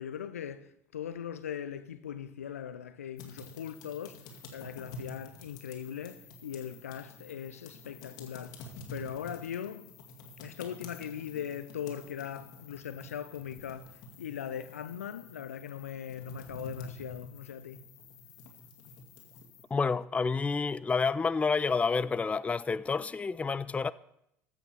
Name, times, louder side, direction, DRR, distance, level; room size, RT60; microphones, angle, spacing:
voice 1, 0.0-4.2 4.5-8.6 8.9-9.9 10.4-17.8, left 9 dB, 80° left, 0.6 m, -40 dB
sound 1, 3.2-19.6, left 2 dB, 55° left, 2.1 m, -49 dB
voice 2, 19.7-23.9, left 4 dB, 15° left, 0.4 m, -29 dB
14.0 x 6.1 x 6.8 m
figure-of-eight pair, 60°, 8 cm